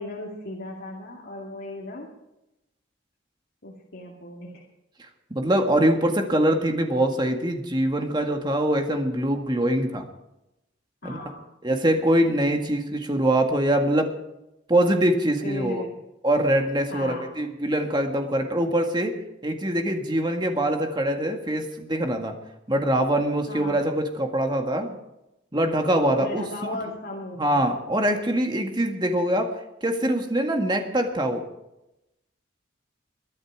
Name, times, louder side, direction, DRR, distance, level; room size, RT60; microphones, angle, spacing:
voice 1, 0.0-2.1 3.6-4.6 11.0-11.5 12.6-12.7 15.4-15.9 16.9-17.3 23.5-23.8 26.1-27.6, left 1 dB, 55° left, -3 dB, 2.4 m, -36 dB
voice 2, 5.3-10.0 11.0-11.2 11.6-14.1 14.7-15.8 16.2-19.2 19.4-22.3 22.7-25.0 25.5-26.8 27.4-29.5 29.8-31.4, right 1 dB, 25° right, 4 dB, 1.9 m, -23 dB
22.0 x 11.0 x 4.9 m, 0.90 s
head